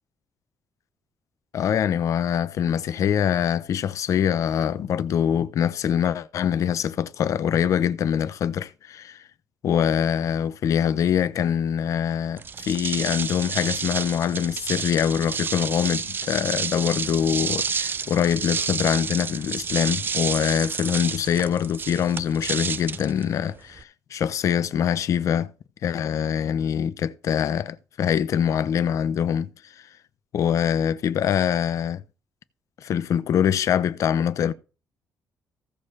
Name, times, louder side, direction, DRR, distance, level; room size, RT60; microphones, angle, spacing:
voice 1, 1.5-9.2 9.6-25.5 25.8-29.5 29.8-29.9 30.3-32.0 32.8-34.5, left 8 dB, 65° left, 0.7 m, -24 dB
sound 1, 12.4-23.8, right 6 dB, 35° right, 0.4 m, -30 dB
15.5 x 6.4 x 3.3 m
cardioid pair, 100°, 6 cm